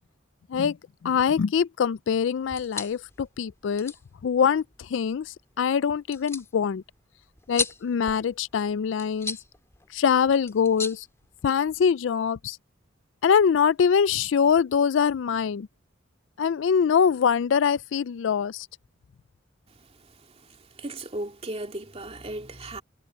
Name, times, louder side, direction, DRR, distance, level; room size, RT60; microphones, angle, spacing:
voice 1, 1.0-3.9 4.2-6.8 7.5-9.4 9.9-11.1 11.4-12.6 13.2-15.7 16.4-18.7, left 7 dB, 65° left, 0.4 m, -23 dB
sound 1, 2.4-11.9, left 4 dB, 15° left, 2.4 m, -39 dB
voice 2, 20.1-22.8, right 1 dB, 30° right, 2.6 m, -37 dB
head